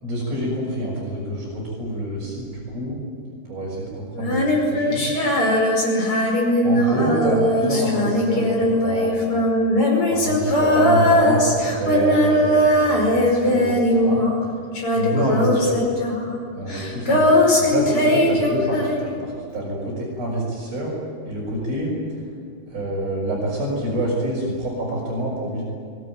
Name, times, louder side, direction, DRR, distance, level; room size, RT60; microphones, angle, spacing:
voice 1, 0.0-3.0 3.5-5.1 6.6-9.3 10.1-14.3 15.0-15.8 16.5-20.9 21.3-21.9 22.7-25.6, right 1 dB, 40° right, -6 dB, 7.2 m, -26 dB
Female singing, 4.1-14.5 14.7-19.2, left 1 dB, 35° left, 5.9 m, -19 dB
23.5 x 23.5 x 9.3 m, 2.4 s
omnidirectional pair, 4.5 m